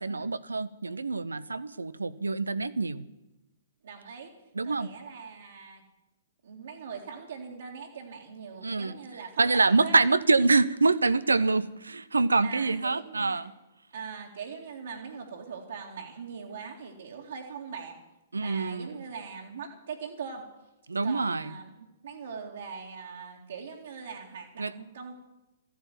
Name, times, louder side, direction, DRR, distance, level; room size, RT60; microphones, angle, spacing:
voice 1, 0.0-3.1 4.5-4.9 8.6-8.9 9.4-13.5 18.3-19.0 20.9-21.5 24.6-24.7, right 3 dB, 85° right, 16 dB, 0.7 m, -26 dB
voice 2, 3.8-4.3 4.6-5.8 6.4-10.0 12.4-13.4 13.9-18.0 18.4-20.5 21.0-25.1, right 6 dB, 70° right, -3 dB, 2.4 m, -41 dB
14.0 x 10.5 x 9.3 m, 0.98 s
figure-of-eight pair, 120°, 0 cm